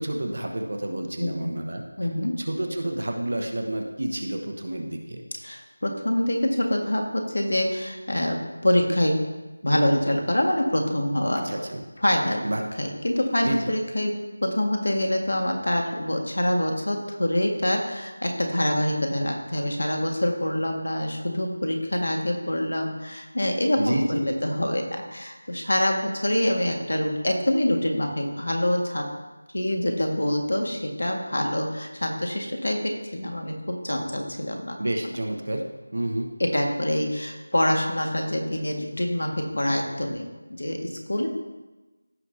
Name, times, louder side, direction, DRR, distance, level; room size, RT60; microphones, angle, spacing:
voice 1, 0.0-1.8 2.4-5.2 11.4-11.8 12.4-12.6 13.4-13.7 23.8-24.2 34.8-35.6 35.9-36.3, right 1 dB, 45° right, 3 dB, 1.1 m, -29 dB
voice 2, 2.0-2.3 5.4-8.4 8.6-9.2 9.6-11.4 12.0-12.4 12.8-14.1 14.4-29.1 29.5-34.8 36.4-41.3, left 1 dB, 70° left, 2 dB, 1.7 m, -25 dB
15.5 x 5.8 x 2.7 m, 1.2 s
figure-of-eight pair, 180°, 0 cm